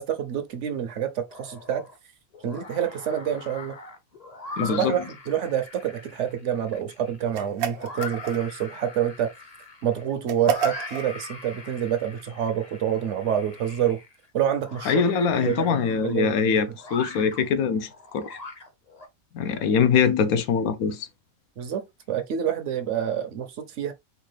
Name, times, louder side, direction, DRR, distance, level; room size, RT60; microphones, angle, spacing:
voice 1, 0.0-1.8 2.4-3.8 4.6-9.3 9.8-14.0 14.3-15.0 15.4-16.6 21.6-23.9, right 9 dB, 65° right, 0.9 m, -27 dB
sound 1, 1.3-2.0 2.3-19.1, left 3 dB, 35° left, 0.7 m, -41 dB
voice 2, 4.6-4.9 14.9-18.4 19.3-21.1, left 6 dB, 80° left, 1.1 m, -23 dB
sound 2, 7.3-8.7 10.3-11.1, right 9 dB, 85° right, 1.2 m, -29 dB
4.6 x 2.4 x 3.2 m
omnidirectional pair, 1.5 m